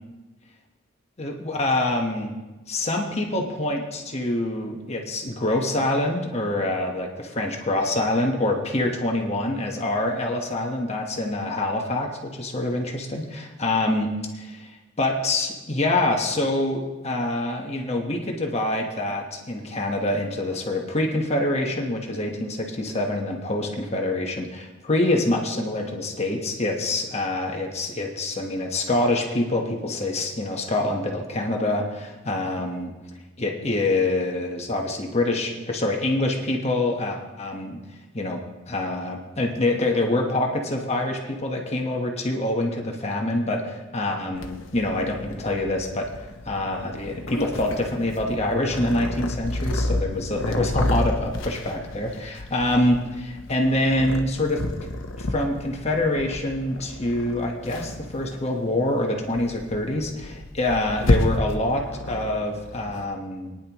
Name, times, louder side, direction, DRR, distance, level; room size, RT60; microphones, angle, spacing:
voice 1, 1.2-2.3 2.7-14.1 14.3-14.7 15.0-32.9 33.4-37.8 38.1-38.4 38.7-46.1 46.4-54.9 55.2-63.6, left 1 dB, 35° left, 1 dB, 1.3 m, -25 dB
Purr, 44.3-63.0, left 1 dB, 80° left, 1.0 m, -30 dB
22.0 x 10.0 x 3.0 m, 1.2 s
head